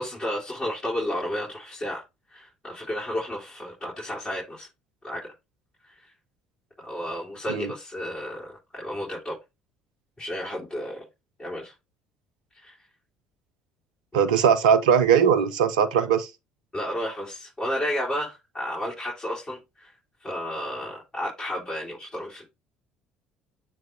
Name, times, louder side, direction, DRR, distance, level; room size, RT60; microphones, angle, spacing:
voice 1, 0.0-2.0 2.3-4.7 5.0-5.3 5.8-6.1 6.8-8.5 8.7-9.4 10.2-11.0 11.4-11.7 12.5-12.8 16.7-19.9 20.2-22.4, equal, 15° left, 3.6 m, -32 dB
voice 2, 14.1-16.3, right 7 dB, 70° right, 0.7 m, -20 dB
7.6 x 3.4 x 3.9 m
figure-of-eight pair, 55°, 4 cm